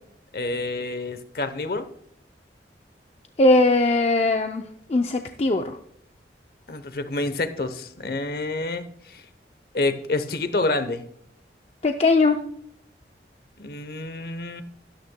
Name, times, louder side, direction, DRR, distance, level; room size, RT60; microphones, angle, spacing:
voice 1, 0.3-1.9 6.7-9.2 9.7-11.0 13.6-14.6, left 2 dB, 55° left, 11 dB, 0.8 m, -28 dB
voice 2, 3.4-4.6 4.9-5.8 11.8-12.4, left 2 dB, 35° left, 5 dB, 0.5 m, -19 dB
12.5 x 11.5 x 2.2 m, 0.69 s
head